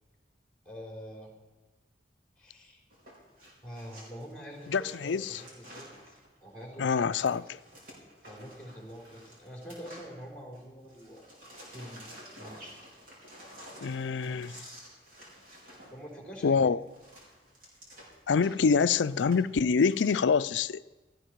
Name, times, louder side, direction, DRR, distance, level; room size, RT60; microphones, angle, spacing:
voice 1, 0.6-1.3 2.4-2.8 3.6-7.0 7.3-7.4 8.2-11.3 11.7-12.1 12.4-12.8 15.9-16.8, equal, 5° left, 3.9 m, -46 dB
sound 1, 2.9-10.6 10.9-20.1, equal, 50° right, 4.5 m, -51 dB
voice 2, 4.7-5.4 6.8-7.6 13.8-14.6 16.4-16.8 18.3-20.8, left 5 dB, 85° left, 0.5 m, -26 dB
16.5 x 14.0 x 4.7 m
head